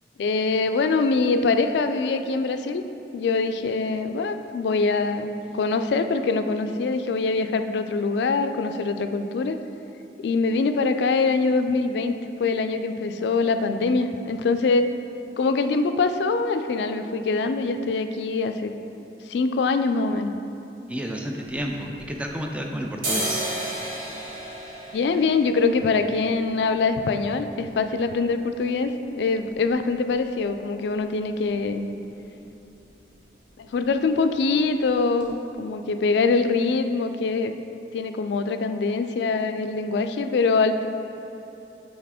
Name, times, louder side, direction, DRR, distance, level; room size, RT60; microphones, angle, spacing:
voice 1, 0.2-2.8 3.1-9.6 10.2-14.9 15.4-18.7 19.3-20.3 24.9-31.9 33.6-37.5 37.9-40.9, left 4 dB, 80° left, 8 dB, 0.3 m, -24 dB
voice 2, 20.9-23.4, equal, 5° right, 1 dB, 0.4 m, -31 dB
sound 1, 21.7-22.5 22.9-30.6 30.9-31.0 31.2-31.8 32.1-32.3 32.6-32.8 33.1-33.8 34.2-34.3 34.8-34.9 35.2-35.3, right 1 dB, 50° right, 1.2 m, -35 dB
5.8 x 4.2 x 4.9 m, 3.0 s
head